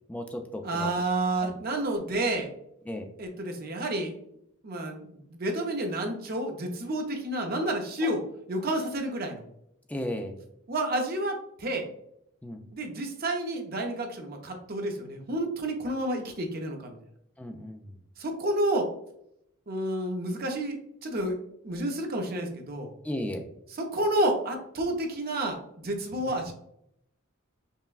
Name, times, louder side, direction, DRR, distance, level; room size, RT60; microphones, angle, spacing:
voice 1, 0.1-0.9 1.4-1.6 2.9-3.1 8.0-8.1 9.9-10.4 12.4-12.6 17.4-17.9 23.0-23.4, left 1 dB, 5° left, 4 dB, 0.3 m, -35 dB
voice 2, 0.6-2.5 3.2-4.1 4.6-8.2 8.5-9.4 10.7-11.9 12.7-17.0 18.2-18.9 19.7-21.4 21.6-22.9 23.7-26.5, right 1 dB, 45° right, 3 dB, 0.6 m, -30 dB
5.4 x 2.2 x 2.4 m, 0.75 s
head